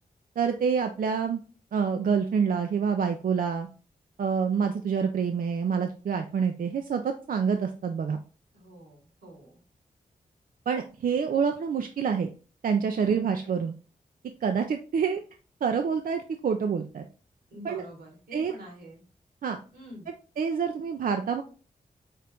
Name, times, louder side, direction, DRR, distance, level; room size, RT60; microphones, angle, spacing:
voice 1, 0.4-1.4 1.7-3.7 4.2-8.2 10.7-12.3 12.6-13.7 14.4-15.2 15.6-17.1 17.6-17.8 18.3-18.5 19.4-19.6 20.4-21.4, right 6 dB, 60° right, 5 dB, 0.4 m, -27 dB
voice 2, 8.5-9.6 13.0-13.3 17.5-19.0 19.7-20.1, equal, 90° right, -1 dB, 1.6 m, -46 dB
4.3 x 2.4 x 3.4 m, 0.37 s
cardioid pair, 45°, 16 cm